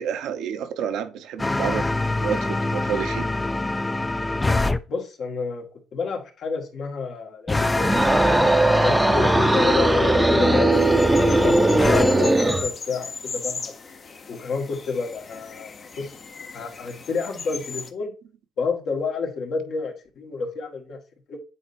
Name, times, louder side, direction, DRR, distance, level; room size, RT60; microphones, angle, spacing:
voice 1, 0.0-1.9 2.2-3.3, right 8 dB, 80° right, 1.0 m, -29 dB
sound 1, 1.4-4.8 7.5-12.1, left 2 dB, 15° left, 0.5 m, -24 dB
voice 2, 4.9-5.7 5.9-7.9 8.7-11.0 11.4-13.7 14.3-16.1 16.5-18.1 18.6-21.0 21.3-21.4, left 5 dB, 60° left, 1.7 m, -29 dB
sound 2, 7.8-12.7, right 2 dB, 15° right, 0.8 m, -19 dB
sound 3, 10.7-17.9, left 5 dB, 45° left, 1.1 m, -37 dB
8.7 x 4.2 x 2.6 m
cardioid pair, 90°, 0 cm